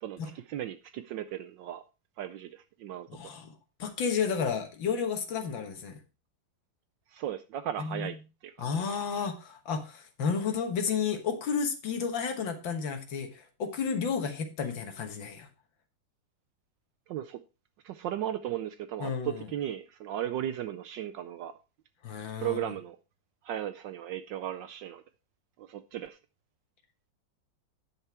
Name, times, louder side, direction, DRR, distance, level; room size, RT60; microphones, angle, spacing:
voice 1, 0.0-1.8 2.2-3.1 7.1-8.2 8.4-8.7 17.1-17.4 17.8-21.5 22.4-23.0 23.4-25.0 25.6-26.2, right 11 dB, 75° right, 11 dB, 1.1 m, -36 dB
voice 2, 3.1-3.5 3.8-6.0 7.8-8.1 8.6-15.5 19.0-19.5 22.0-22.6, left 6 dB, 65° left, 7 dB, 2.0 m, -32 dB
10.0 x 5.9 x 4.4 m, 0.30 s
omnidirectional pair, 2.3 m